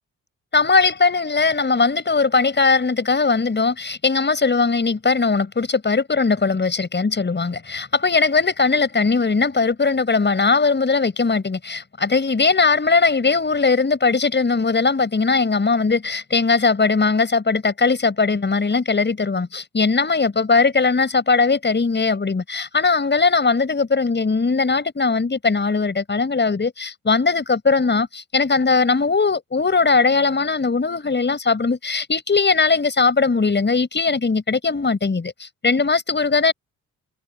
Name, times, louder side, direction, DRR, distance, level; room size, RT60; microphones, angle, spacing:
voice 1, 0.5-36.5, left 4 dB, 35° left, 6.4 m, -19 dB
cardioid pair, 75°, 32 cm